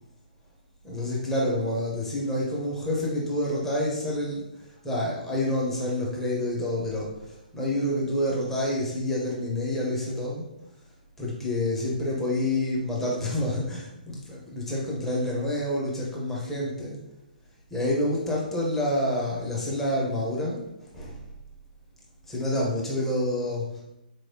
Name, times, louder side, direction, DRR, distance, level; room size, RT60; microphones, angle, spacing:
voice 1, 0.8-4.4 4.8-7.1 7.5-10.5 11.2-17.0 17.7-20.6 20.9-21.2 22.3-23.8, left 1 dB, 5° left, -5 dB, 0.9 m, -28 dB
4.0 x 3.2 x 2.8 m, 0.87 s
figure-of-eight pair, 130°, 5 cm